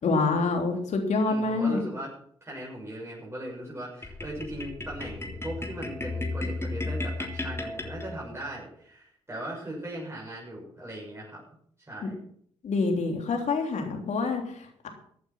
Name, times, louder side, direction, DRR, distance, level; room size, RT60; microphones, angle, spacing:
voice 1, 0.0-1.8 12.6-14.9, left 3 dB, 55° left, 3 dB, 3.4 m, -26 dB
voice 2, 1.2-2.1 2.4-11.4 11.9-12.2, right 1 dB, 20° right, -4 dB, 6.8 m, -39 dB
sound 1, 4.0-8.5, left 2 dB, 20° left, 3.3 m, -34 dB
15.0 x 8.8 x 5.9 m, 0.63 s
hypercardioid pair, 45°, 14 cm